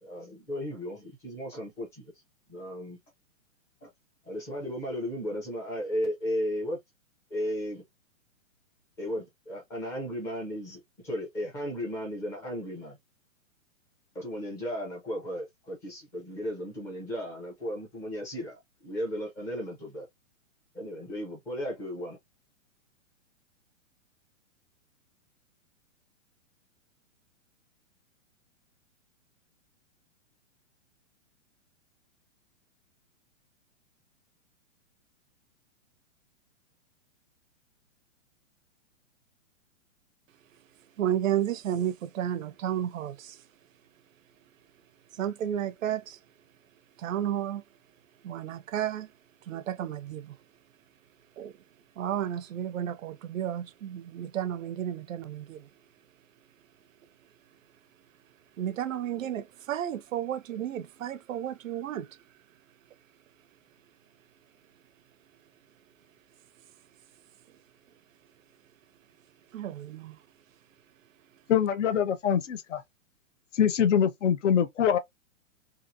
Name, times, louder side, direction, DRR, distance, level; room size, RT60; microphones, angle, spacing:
voice 1, 0.0-2.1 2.5-3.0 3.8-3.9 4.2-6.8 7.3-7.8 9.0-13.0 14.1-20.1 20.7-22.2, equal, 5° left, 0.5 m, -35 dB
voice 2, 41.0-43.4 45.2-46.2 47.0-47.6 48.2-49.1 49.5-50.3 51.4-51.5 52.0-55.7 58.6-62.2 69.5-70.2, right 10 dB, 75° right, 0.6 m, -32 dB
voice 3, 71.5-72.8 73.5-75.0, left 8 dB, 60° left, 0.7 m, -24 dB
2.9 x 2.5 x 2.5 m
hypercardioid pair, 160°, 40 cm